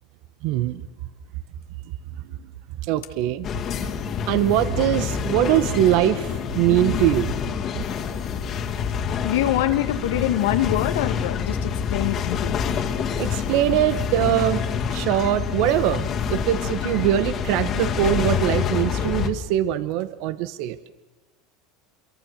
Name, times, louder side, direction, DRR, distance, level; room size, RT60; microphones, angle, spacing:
voice 1, 0.4-0.8 2.8-3.5 4.3-7.3 13.2-14.6 14.9-20.8, right 12 dB, 60° right, 14 dB, 1.1 m, -22 dB
sound 1, 3.4-19.3, left 7 dB, 35° left, 2.2 m, -27 dB
voice 2, 9.2-12.6, left 13 dB, 90° left, 7 dB, 1.6 m, -24 dB
27.0 x 23.0 x 6.6 m, 1.1 s
supercardioid pair, 150°, 0 cm